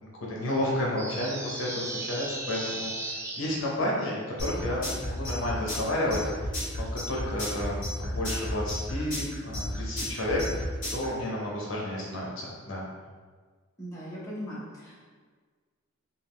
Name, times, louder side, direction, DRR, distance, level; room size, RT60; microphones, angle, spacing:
voice 1, 0.0-6.2 6.9-12.8, left 1 dB, 65° left, -4 dB, 0.7 m, -31 dB
sound 1, 1.0-3.4, right 2 dB, 15° right, 0.5 m, -36 dB
sound 2, 4.4-11.0, left 1 dB, 40° left, 1.2 m, -32 dB
voice 2, 13.8-15.1, equal, 15° left, -8 dB, 0.8 m, -39 dB
3.5 x 2.3 x 3.5 m, 1.5 s
head